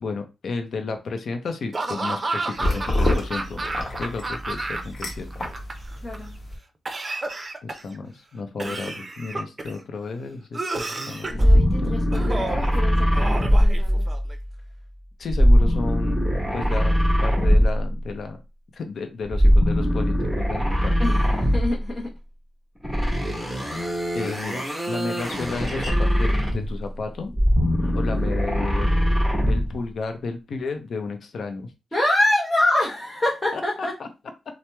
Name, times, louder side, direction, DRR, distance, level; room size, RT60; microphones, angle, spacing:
voice 1, 0.0-3.6 4.0-5.3 7.6-12.0 15.2-16.2 16.5-16.9 17.2-18.4 18.7-21.2 24.1-24.6 24.9-27.3 27.9-28.9 29.5-31.7 33.5-33.6 34.0-34.1, left 4 dB, 65° left, 0.6 m, -32 dB
Laughter / Cough, 1.7-5.0 5.3-6.2 6.9-8.0 8.6-9.8 10.5-11.5 12.1-12.7 13.1-14.3, right 2 dB, 35° right, 0.5 m, -31 dB
sound 1, 2.6-6.6, left 1 dB, 45° left, 1.0 m, -28 dB
voice 2, 6.0-6.3 11.3-14.1 21.0-22.1 27.8-27.9 31.9-34.0, left 1 dB, 15° left, 0.9 m, -26 dB
sound 2, 11.3-14.4 15.3-18.0 19.3-21.9 22.8-26.8 27.3-29.8, equal, ahead, 1.2 m, -21 dB
2.9 x 2.0 x 3.3 m
cardioid pair, 75°, 0 cm